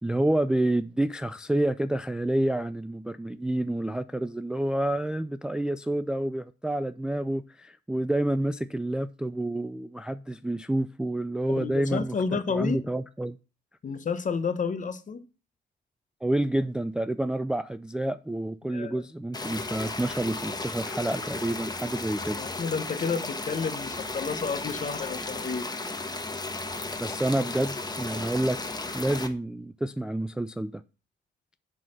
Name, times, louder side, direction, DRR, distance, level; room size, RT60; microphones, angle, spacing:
voice 1, 0.0-13.4 16.2-22.4 27.0-28.6 28.9-30.8, right 1 dB, 5° right, 0.3 m, -28 dB
voice 2, 11.5-12.8 13.8-15.2 18.7-19.0 22.4-25.7, left 5 dB, 40° left, 1.0 m, -30 dB
sound 1, 19.3-29.3, left 3 dB, 20° left, 1.2 m, -35 dB
7.5 x 4.0 x 6.5 m
cardioid pair, 90°, 20 cm